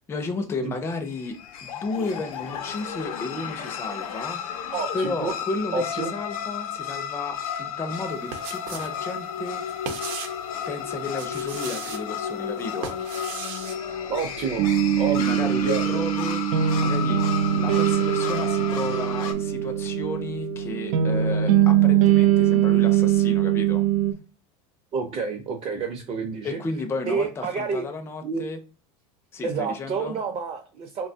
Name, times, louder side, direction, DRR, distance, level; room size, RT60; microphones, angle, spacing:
voice 1, 0.0-4.4 4.9-9.6 10.7-13.0 15.1-17.2 17.5-23.8 26.4-28.6 29.3-30.2, left 3 dB, 15° left, 0.4 m, -33 dB
sound 1, 1.1-19.3, left 8 dB, 90° left, 0.6 m, -33 dB
voice 2, 4.7-5.3 5.7-6.1 14.1-14.7 15.0-16.0 24.9-26.6 27.0-27.8 28.2-28.4 29.4-31.1, right 5 dB, 35° right, 0.5 m, -29 dB
sound 2, 8.1-9.0 9.2-10.5 11.0-12.0 12.6-13.8, right 7 dB, 60° right, 0.8 m, -36 dB
sound 3, 14.6-24.1, right 10 dB, 85° right, 0.5 m, -21 dB
3.2 x 2.2 x 2.6 m
supercardioid pair, 125°, 18 cm